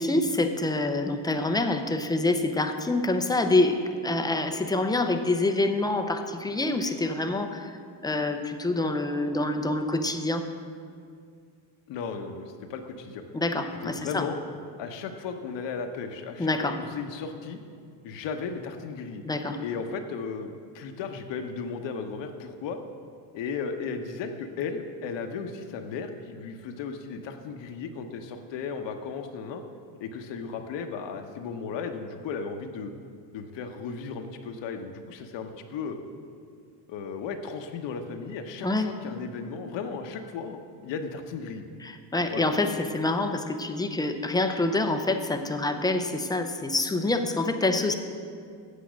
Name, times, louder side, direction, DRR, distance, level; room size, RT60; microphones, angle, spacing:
voice 1, 0.0-7.8 8.0-10.5 13.3-14.3 16.4-16.8 19.3-19.6 38.6-38.9 41.8-47.9, left 2 dB, 10° left, 7 dB, 0.4 m, -26 dB
voice 2, 11.9-13.2 13.8-14.4 14.8-17.6 18.0-19.2 19.6-20.5 20.7-22.8 23.3-29.6 30.0-32.9 33.3-36.0 36.9-41.6 42.3-42.5, left 5 dB, 60° left, 4 dB, 0.9 m, -35 dB
8.3 x 7.6 x 6.1 m, 2.3 s
cardioid pair, 105°, 49 cm